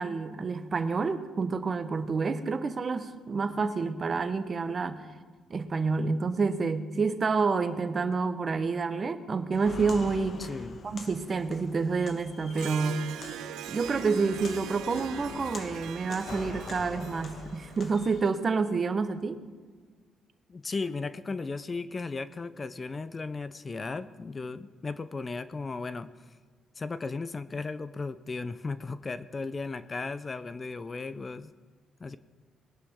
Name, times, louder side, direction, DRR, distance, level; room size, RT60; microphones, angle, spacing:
voice 1, 0.0-5.1 5.5-10.4 10.8-13.1 13.7-19.4, right 4 dB, 40° right, 10 dB, 1.1 m, -28 dB
Walk footsteps, 9.5-18.3, left 4 dB, 50° left, 1.2 m, -44 dB
voice 2, 10.4-10.8 20.5-26.1 26.8-31.5 32.0-32.2, left 3 dB, 30° left, 14 dB, 0.6 m, -36 dB
Harp, 12.5-18.2, right 12 dB, 85° right, 0.5 m, -42 dB
20.5 x 11.0 x 3.7 m, 1.5 s
cardioid pair, 90°, 0 cm